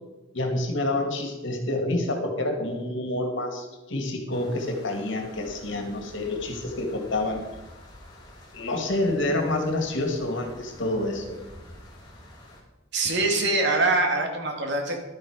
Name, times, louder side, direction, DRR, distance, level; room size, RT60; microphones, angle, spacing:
voice 1, 0.3-7.4 8.5-11.4, left 1 dB, 65° left, 4 dB, 2.3 m, -28 dB
sound 1, 4.3-12.6, left 1 dB, 20° left, 3.7 m, -48 dB
voice 2, 12.9-15.0, right 2 dB, 60° right, 3 dB, 2.2 m, -24 dB
12.0 x 9.6 x 5.1 m, 1.1 s
head